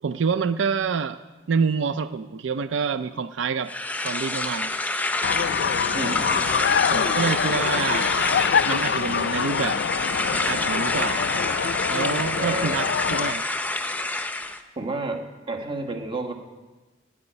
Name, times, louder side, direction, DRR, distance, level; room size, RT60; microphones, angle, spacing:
voice 1, 0.0-1.2 1.5-3.7 4.0-4.7 6.9-8.1 8.6-9.8 10.3-11.2 11.9-13.4, right 5 dB, 80° right, 12 dB, 0.4 m, -27 dB
sound 1, 3.7-14.6, left 2 dB, 10° left, 0.6 m, -27 dB
sound 2, 5.2-13.3, left 7 dB, 65° left, 0.4 m, -25 dB
voice 2, 5.9-6.6 12.3-12.7 14.8-15.2 15.5-16.3, right 3 dB, 25° right, 4 dB, 1.4 m, -30 dB
9.5 x 9.0 x 9.9 m, 1.2 s
head